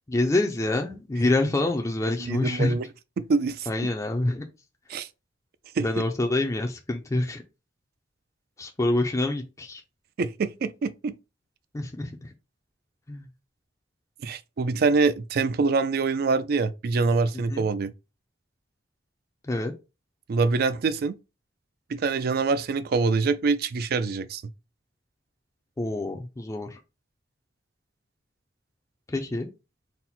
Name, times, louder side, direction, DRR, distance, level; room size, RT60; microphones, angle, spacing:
voice 1, 0.1-2.7 3.7-4.5 5.8-7.4 8.6-9.8 11.7-12.3 13.1-13.3 17.5-17.7 19.4-19.7 25.8-26.8 29.1-29.5, left 2 dB, 15° left, 0.4 m, -26 dB
voice 2, 2.2-2.8 3.2-3.7 4.9-5.1 5.8-5.9 10.2-11.1 14.2-17.9 20.3-21.1 21.9-24.4, right 4 dB, 55° right, 0.4 m, -25 dB
4.2 x 2.1 x 4.0 m
head